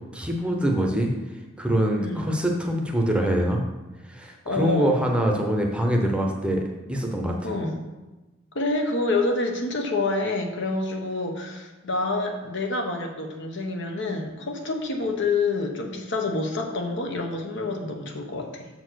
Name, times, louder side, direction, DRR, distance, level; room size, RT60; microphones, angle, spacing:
voice 1, 0.1-1.1 1.6-3.6 4.0-7.5, equal, 5° right, 1 dB, 0.8 m, -24 dB
voice 2, 2.0-2.3 4.4-5.0 7.4-7.8 8.5-18.7, left 2 dB, 60° left, 3 dB, 1.0 m, -27 dB
6.7 x 4.4 x 6.3 m, 1.1 s
head